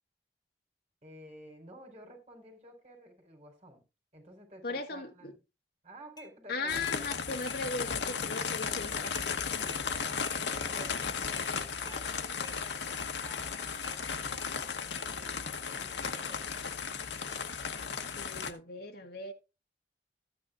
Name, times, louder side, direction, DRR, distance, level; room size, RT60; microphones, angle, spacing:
voice 1, 1.0-3.8 4.1-5.4 5.8-7.0 9.5-11.4 11.8-14.5 14.9-16.4, right 1 dB, 40° right, 4.0 m, -52 dB
voice 2, 4.6-5.3 6.5-9.2 18.2-19.3, left 3 dB, 60° left, 1.4 m, -37 dB
sound 1, 6.2-6.3 6.8-7.0 7.5-7.6 8.1-8.2 8.6-8.7 9.1-9.3 9.7-9.8 10.2-10.4 10.8-10.9 11.3-11.5 11.9-12.0 12.4-12.6 13.0-13.1 13.8-14.0 14.4-14.5 15.0-15.1, equal, 20° left, 1.6 m, -50 dB
sound 2, 6.7-18.5, left 6 dB, 80° left, 1.0 m, -35 dB
13.5 x 9.5 x 2.4 m
head